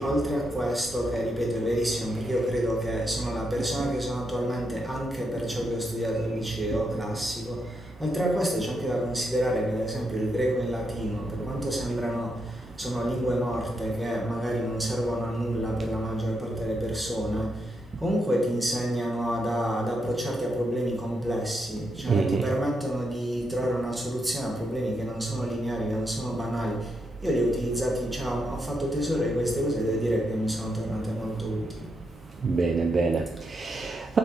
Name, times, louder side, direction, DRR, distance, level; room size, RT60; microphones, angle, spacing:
voice 1, 0.0-7.6 8.0-12.3 12.8-17.5 18.0-26.9 27.2-31.8, equal, 10° right, -1 dB, 1.3 m, -28 dB
voice 2, 22.1-22.4 32.4-34.2, right 4 dB, 45° right, 4 dB, 0.3 m, -25 dB
5.1 x 3.4 x 2.7 m, 1.0 s
cardioid pair, 90°, 0 cm